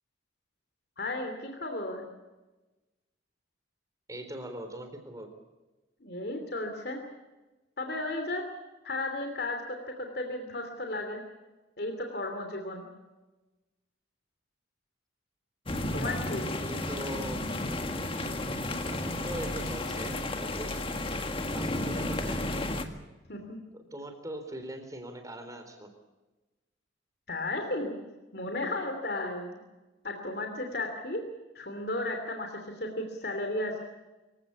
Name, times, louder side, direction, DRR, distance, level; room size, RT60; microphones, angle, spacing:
voice 1, 1.0-2.0 6.0-7.0 7.8-8.4 8.8-11.2 11.8-12.8 15.9-16.5 23.3-23.6 27.3-28.0 28.3-29.6 30.0-31.2 31.5-33.8, left 2 dB, 55° left, 4 dB, 3.0 m, -34 dB
voice 2, 4.1-5.3 16.5-17.4 18.9-20.2 20.4-20.9 21.5-22.4 23.7-25.9, right 1 dB, 20° right, 6 dB, 3.9 m, -41 dB
sound 1, 15.7-22.9, left 1 dB, 30° left, 1.8 m, -32 dB
25.5 x 16.5 x 8.4 m, 1.1 s
head